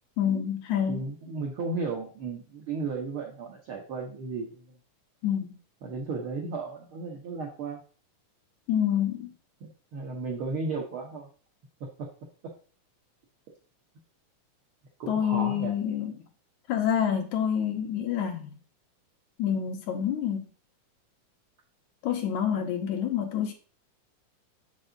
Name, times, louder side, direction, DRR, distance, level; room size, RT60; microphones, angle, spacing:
voice 1, 0.2-1.0 5.2-5.5 8.7-9.3 15.1-16.1 16.7-18.5 19.4-20.5 22.0-23.5, left 9 dB, 75° left, 2.2 m, -27 dB
voice 2, 0.9-4.6 5.8-7.8 9.6-11.3 15.0-15.7, right 4 dB, 70° right, 1.2 m, -34 dB
6.9 x 5.4 x 3.8 m
omnidirectional pair, 3.7 m